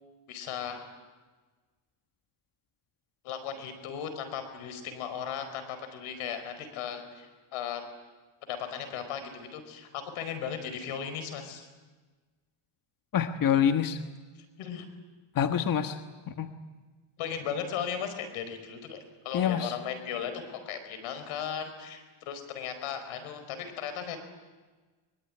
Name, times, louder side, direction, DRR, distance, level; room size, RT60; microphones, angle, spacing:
voice 1, 0.3-0.9 3.2-7.8 8.4-11.7 14.6-14.9 17.2-19.0 19.2-24.2, left 8 dB, 90° left, 8 dB, 5.0 m, -36 dB
voice 2, 13.1-14.0 15.3-16.0 16.3-16.5 19.3-19.7, left 8 dB, 40° left, 7 dB, 1.5 m, -26 dB
23.5 x 23.5 x 10.0 m, 1.3 s
cardioid pair, 120°, 49 cm